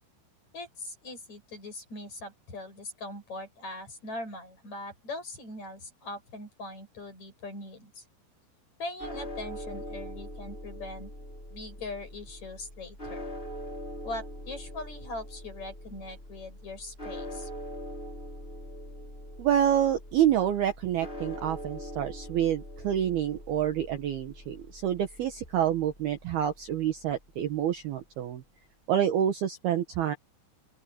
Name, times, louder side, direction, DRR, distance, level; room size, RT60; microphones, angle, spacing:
voice 1, 0.5-8.0 8.8-11.1 11.5-13.2 14.0-17.5, left 2 dB, 35° left, 8.7 m, -41 dB
sound 1, 9.0-27.2, equal, 10° left, 5.2 m, -43 dB
voice 2, 19.4-28.4 28.9-30.2, right 10 dB, 65° right, 2.8 m, -27 dB
open air
omnidirectional pair, 5.8 m